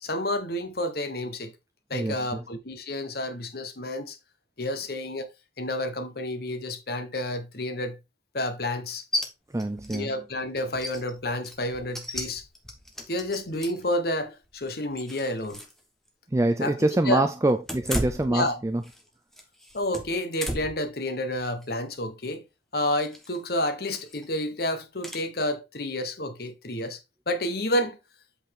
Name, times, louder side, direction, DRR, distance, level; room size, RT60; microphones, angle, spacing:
voice 1, 0.0-1.5 1.9-4.2 4.6-5.3 5.6-8.0 8.3-9.0 9.9-12.4 13.1-15.6 16.6-17.2 18.3-18.6 19.7-22.4 22.7-27.0 27.3-28.0, left 1 dB, 55° left, 1.1 m, -30 dB
voice 2, 1.9-2.4 9.5-10.1 16.3-18.8, right 1 dB, 15° right, 0.4 m, -25 dB
sound 1, 9.1-9.3 9.6-10.0 10.3-10.4 10.7-13.9 14.4-15.8 16.1-16.2 17.6-19.0 19.3-20.9 21.3-21.7 23.0-23.4 23.9-24.2 25.0-25.2, equal, ahead, 1.1 m, -35 dB
8.0 x 4.2 x 3.6 m
head